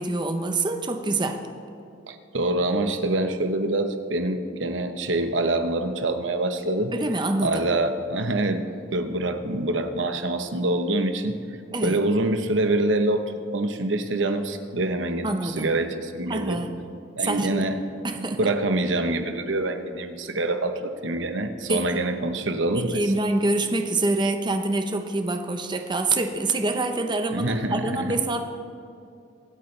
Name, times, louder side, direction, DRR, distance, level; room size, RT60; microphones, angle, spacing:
voice 1, 0.0-1.4 6.9-7.7 11.7-12.0 15.2-15.7 16.3-16.8 17.2-17.7 18.0-18.4 21.7-22.0 22.7-28.4, right 2 dB, 25° right, 6 dB, 0.8 m, -26 dB
voice 2, 2.1-6.9 7.4-11.4 11.8-16.6 17.2-17.8 18.2-23.0 27.3-28.2, right 2 dB, 80° right, 8 dB, 1.0 m, -25 dB
25.0 x 8.5 x 3.3 m, 2.5 s
head